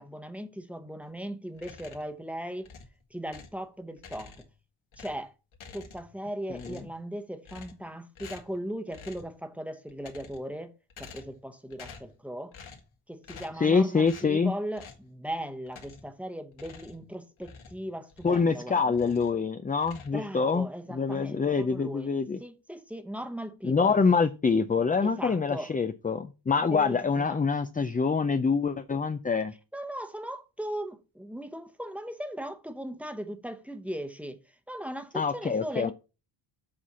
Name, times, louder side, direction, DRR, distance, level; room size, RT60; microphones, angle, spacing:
voice 1, 0.0-2.7 3.1-4.3 5.0-5.3 5.7-10.7 11.0-12.5 13.1-19.2 20.1-22.1 22.4-23.9 25.0-25.7 26.7-27.4 29.7-34.4 34.7-35.9, right 1 dB, 5° right, 0.9 m, -38 dB
sound 1, 1.5-2.2 2.6-3.6 4.0-4.6 4.9-6.2 6.5-7.0 7.4-7.9 8.2-8.6 8.9-9.3 9.9-10.5 10.9-11.4 11.7-12.2 12.5-12.9 13.2-13.7 14.0-14.3 14.7-15.1 15.7-16.2 16.5-18.6 18.9-19.4 19.8-20.6, left 5 dB, 80° left, 2.1 m, -49 dB
voice 2, 13.6-14.5 18.2-22.4 23.6-29.5 35.1-35.9, left 5 dB, 20° left, 0.4 m, -26 dB
7.6 x 4.2 x 6.7 m
wide cardioid pair, 150°, 48 cm